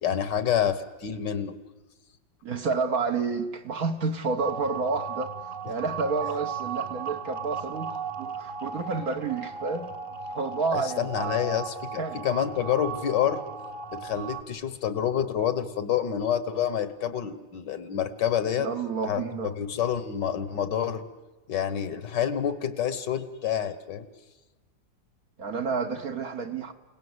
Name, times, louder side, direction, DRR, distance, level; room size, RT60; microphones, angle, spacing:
voice 1, 0.0-1.6 10.7-13.4 13.9-18.7 19.0-19.3 19.6-21.0 21.5-24.1, left 9 dB, 65° left, 1.8 m, -28 dB
voice 2, 2.4-5.3 5.6-9.9 10.3-11.6 12.0-12.2 18.6-19.5 25.4-26.7, right 4 dB, 50° right, 1.6 m, -30 dB
sound 1, 4.4-14.4, right 6 dB, 30° right, 1.4 m, -36 dB
29.5 x 18.0 x 8.0 m
omnidirectional pair, 2.0 m